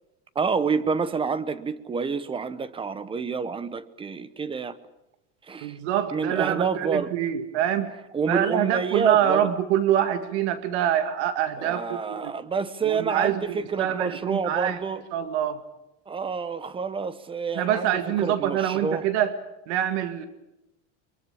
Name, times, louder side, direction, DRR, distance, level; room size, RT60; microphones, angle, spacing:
voice 1, 0.3-4.8 5.5-5.8 6.1-7.1 8.1-9.5 11.6-15.0 16.1-19.1, right 5 dB, 15° right, 1.0 m, -28 dB
voice 2, 5.6-7.9 8.3-12.3 12.8-14.8 15.1-15.6 17.6-19.3 19.7-20.2, right 10 dB, 75° right, 2.0 m, -25 dB
24.0 x 22.5 x 8.7 m
cardioid pair, 150°, 34 cm